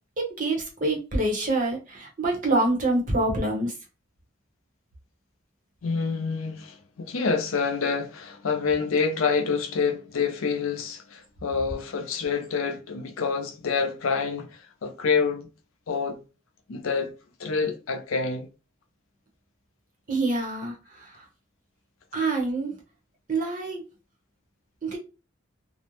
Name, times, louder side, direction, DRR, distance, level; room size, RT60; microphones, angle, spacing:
voice 1, 0.2-3.7 20.1-21.1 22.1-22.7 23.3-23.8 24.8-25.0, right 2 dB, 40° right, 0.7 m, -26 dB
voice 2, 5.8-15.5 15.9-16.2 16.7-17.1 17.4-18.5, left 5 dB, 85° left, 0.5 m, -27 dB
2.5 x 2.0 x 3.0 m
head